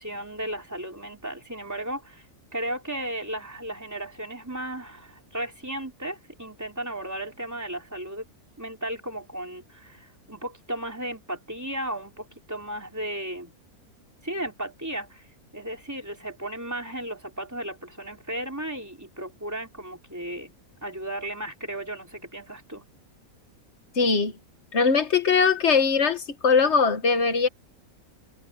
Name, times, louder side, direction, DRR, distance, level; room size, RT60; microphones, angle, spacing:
voice 1, 0.0-2.3 2.5-8.3 8.6-13.5 14.2-15.2 15.5-20.5 20.8-22.8, right 1 dB, 10° right, 3.5 m, -35 dB
voice 2, 24.0-24.3 24.7-27.5, left 5 dB, 50° left, 1.7 m, -21 dB
omnidirectional pair, 1.5 m